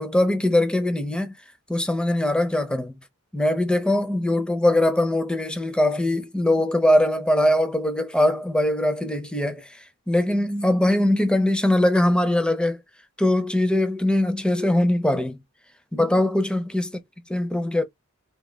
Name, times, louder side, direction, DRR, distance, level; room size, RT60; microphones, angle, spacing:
voice 1, 0.0-1.3 1.7-3.0 3.3-9.8 10.1-12.8 13.2-15.4 15.9-16.9 17.3-17.8, left 1 dB, 5° left, 0.5 m, -21 dB
3.4 x 2.2 x 3.2 m
head